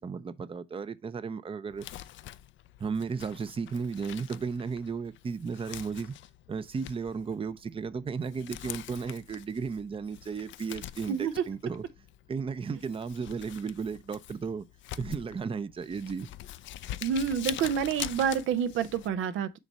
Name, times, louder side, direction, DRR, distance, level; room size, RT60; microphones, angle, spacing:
voice 1, 0.0-1.9 2.8-6.2 6.5-11.8 12.3-14.6 15.0-16.3, right 5 dB, 25° right, 0.5 m, -34 dB
Crumpling crinkling, 1.7-19.1, left 13 dB, 70° left, 0.4 m, -44 dB
voice 2, 11.1-11.4 17.0-19.6, right 8 dB, 80° right, 0.6 m, -28 dB
6.5 x 3.1 x 5.3 m
cardioid pair, 90°, 20 cm